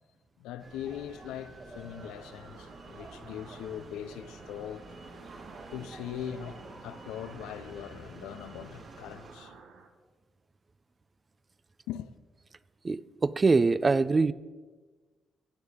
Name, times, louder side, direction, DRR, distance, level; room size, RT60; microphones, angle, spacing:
voice 1, 0.4-4.9 5.7-9.5 11.9-12.1, left 10 dB, 85° left, 0.4 m, -41 dB
sound 1, 0.6-9.4, right 2 dB, 55° right, 2.1 m, -48 dB
sound 2, 2.0-9.9, right 5 dB, 80° right, 1.1 m, -54 dB
voice 2, 12.8-14.3, right 4 dB, 35° right, 0.4 m, -24 dB
16.0 x 7.9 x 3.7 m
supercardioid pair, 60°, 0 cm